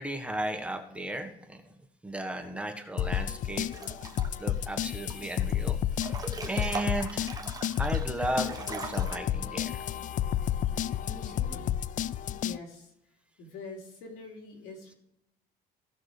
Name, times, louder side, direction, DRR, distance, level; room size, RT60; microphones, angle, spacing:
voice 1, 0.0-1.6 2.0-3.7 4.4-5.8 6.4-7.4 7.8-9.8, right 1 dB, 5° right, 4 dB, 1.4 m, -35 dB
sound 1, 3.0-12.6, left 10 dB, 50° left, 0.4 m, -31 dB
Breathing / Bathtub (filling or washing) / Splash splatter, 3.7-4.5 4.9-5.5 5.9-9.2, right 4 dB, 20° right, 1.2 m, -41 dB
voice 2, 11.0-11.7 12.2-12.9 13.4-14.9, left 2 dB, 90° left, 1 dB, 2.9 m, -45 dB
16.0 x 6.0 x 3.3 m, 0.83 s
cardioid pair, 110°, 17 cm